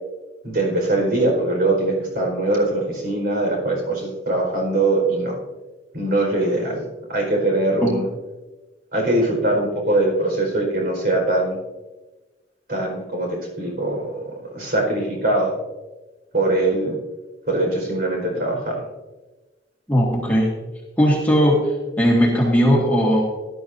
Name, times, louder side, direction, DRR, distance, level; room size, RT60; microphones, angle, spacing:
voice 1, 0.4-5.3 5.9-8.1 8.9-11.6 12.7-14.2 14.5-15.5 16.3-16.9 17.5-18.8, right 2 dB, 55° right, 0 dB, 4.7 m, -22 dB
voice 2, 19.9-20.5 21.0-21.6 22.0-23.2, equal, 10° left, -3 dB, 1.9 m, -17 dB
18.0 x 11.5 x 2.7 m, 1.2 s
head